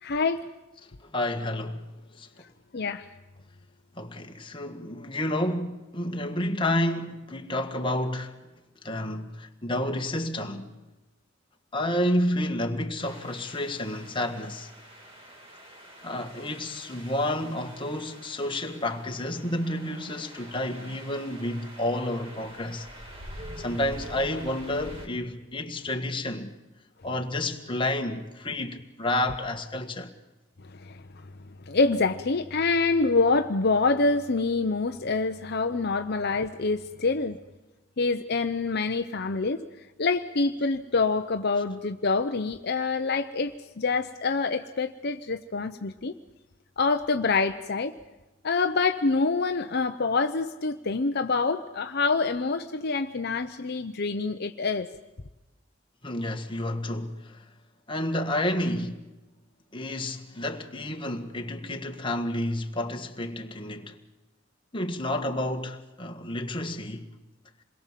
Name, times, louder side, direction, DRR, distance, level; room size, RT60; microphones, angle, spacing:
voice 1, 0.0-0.4 2.4-2.5 2.7-3.1 30.6-31.3 31.6-37.4 38.0-46.2 46.8-47.9 48.4-54.9, left 3 dB, 55° left, 0.8 m, -26 dB
voice 2, 1.0-1.8 2.2-2.3 4.0-8.4 8.8-10.7 11.7-14.7 16.0-22.9 23.4-26.5 27.0-30.1 56.0-57.4 57.9-59.0 59.7-64.0 64.7-67.1, left 1 dB, 25° left, 1.8 m, -30 dB
sound 1, 13.0-25.1, equal, 30° right, 4.5 m, -46 dB
27.5 x 22.0 x 7.5 m
head